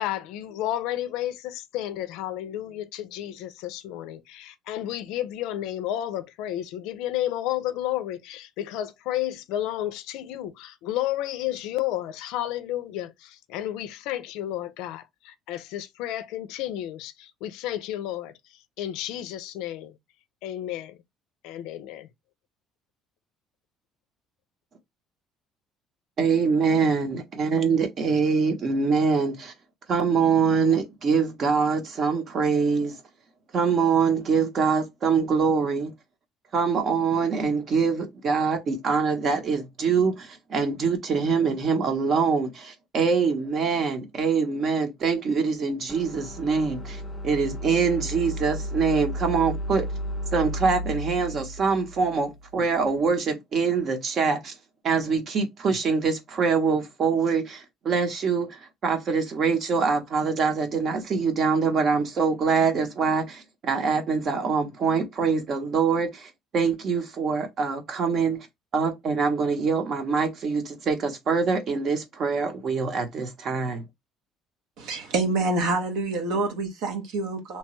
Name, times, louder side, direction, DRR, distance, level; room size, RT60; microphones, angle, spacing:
voice 1, 0.0-18.3 18.8-19.9 20.4-21.0 21.4-22.1, left 13 dB, 80° left, 0.4 m, -32 dB
voice 2, 26.2-29.5 29.9-33.0 33.5-35.9 36.5-49.9 50.3-54.5 54.8-68.5 68.7-73.8, right 5 dB, 45° right, 0.8 m, -24 dB
sound 1, 45.9-53.0, equal, 5° left, 0.7 m, -34 dB
voice 3, 74.8-77.6, right 3 dB, 75° right, 0.9 m, -27 dB
2.9 x 2.2 x 2.9 m
cardioid pair, 120°, 0 cm